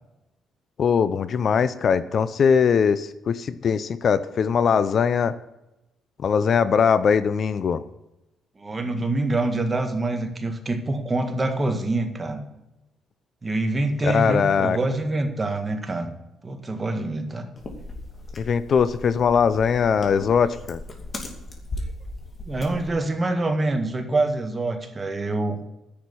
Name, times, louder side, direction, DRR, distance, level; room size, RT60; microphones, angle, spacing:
voice 1, 0.8-5.3 6.2-7.8 14.0-14.8 18.4-20.8, left 6 dB, 55° left, 14 dB, 0.6 m, -21 dB
voice 2, 8.6-12.4 13.4-16.1 16.4-17.5 22.5-25.6, right 2 dB, 25° right, 5 dB, 1.8 m, -25 dB
sound 1, 17.6-22.9, left 2 dB, 35° left, 2.6 m, -37 dB
10.5 x 6.6 x 8.7 m, 0.95 s
cardioid pair, 90°, 0 cm